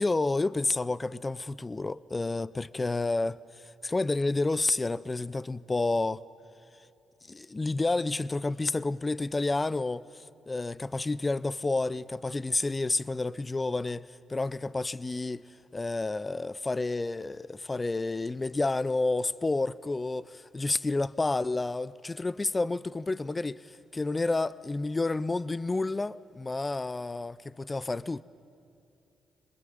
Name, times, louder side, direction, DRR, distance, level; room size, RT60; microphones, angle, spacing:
voice 1, 0.0-6.2 7.3-15.5 15.7-28.2, left 2 dB, 25° left, 0.5 m, -30 dB
25.5 x 21.0 x 9.3 m
supercardioid pair, 55°, 0 cm